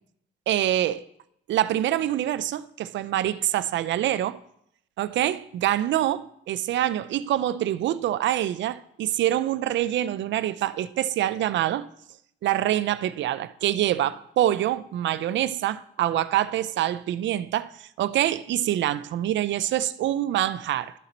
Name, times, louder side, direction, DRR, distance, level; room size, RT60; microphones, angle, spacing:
voice 1, 0.5-1.0 1.5-4.4 5.0-11.9 12.4-17.7 18.0-20.9, right 12 dB, 65° right, 0.4 m, -25 dB
12.5 x 4.2 x 3.9 m
cardioid pair, 90°, 20 cm